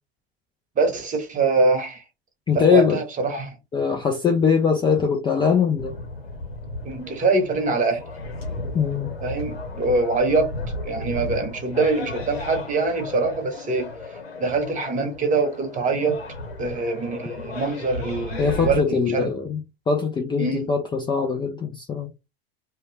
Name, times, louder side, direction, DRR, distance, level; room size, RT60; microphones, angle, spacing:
voice 1, 0.8-2.0 2.5-3.5 6.8-8.0 9.2-10.5 10.8-13.9 14.4-16.2 16.6-19.3 20.4-20.7, right 3 dB, 25° right, 0.9 m, -23 dB
voice 2, 2.5-3.0 3.7-5.9 8.7-9.1 18.4-19.6 19.9-22.1, left 6 dB, 15° left, 0.4 m, -21 dB
sound 1, 5.8-18.8, left 2 dB, 80° left, 1.1 m, -34 dB
2.2 x 2.1 x 3.1 m
figure-of-eight pair, 80°, 31 cm